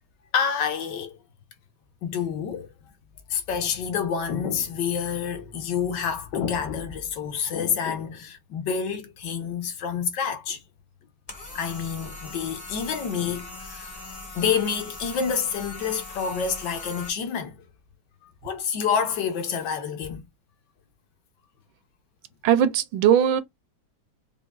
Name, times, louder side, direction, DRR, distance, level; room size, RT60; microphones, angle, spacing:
voice 1, 0.3-1.2 2.0-2.7 3.3-10.6 11.5-13.9 14.3-17.6 18.4-20.3, left 7 dB, 70° left, 1.2 m, -28 dB
sound 1, 11.3-17.1, left 3 dB, 50° left, 0.4 m, -40 dB
voice 2, 22.4-23.4, right 9 dB, 80° right, 1.3 m, -19 dB
5.1 x 2.4 x 2.3 m
omnidirectional pair, 2.2 m